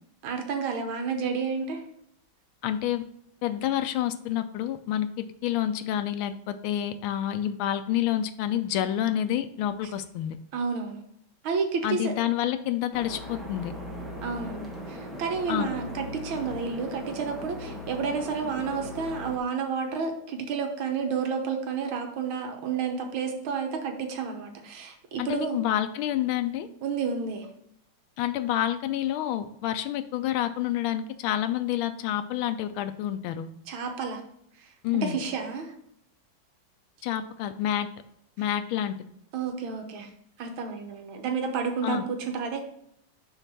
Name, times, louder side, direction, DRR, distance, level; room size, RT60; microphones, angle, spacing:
voice 1, 0.2-1.8 10.5-11.0 11.4-12.1 14.2-25.6 26.8-27.5 33.7-34.2 35.0-35.7 39.3-40.1 40.4-42.6, right 5 dB, 85° right, 4 dB, 1.8 m, -30 dB
voice 2, 2.6-3.0 3.4-10.4 11.8-13.7 15.5-15.7 25.2-26.7 28.2-33.5 34.8-35.2 37.0-37.9 38.4-38.9 41.8-42.0, left 11 dB, 90° left, 9 dB, 1.4 m, -28 dB
sound 1, 12.9-19.4, left 1 dB, ahead, 0.6 m, -39 dB
5.6 x 4.0 x 6.0 m, 0.72 s
omnidirectional pair, 2.2 m